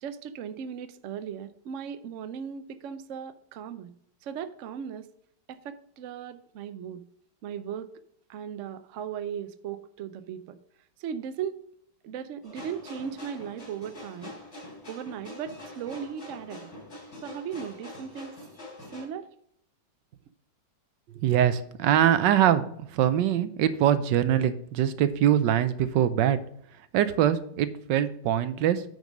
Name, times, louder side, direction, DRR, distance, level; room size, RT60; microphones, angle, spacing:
voice 1, 0.0-3.9 4.2-5.1 5.5-7.0 7.4-7.9 8.3-10.6 11.0-11.5 12.0-14.3 14.9-16.7 17.2-18.4 18.9-19.3, right 8 dB, 65° right, 11 dB, 0.8 m, -37 dB
sound 1, 12.4-19.1, left 1 dB, 40° left, 3.8 m, -44 dB
voice 2, 21.2-26.4 26.9-28.8, right 10 dB, 85° right, 12 dB, 1.3 m, -23 dB
9.4 x 5.3 x 5.2 m, 0.68 s
omnidirectional pair, 1.9 m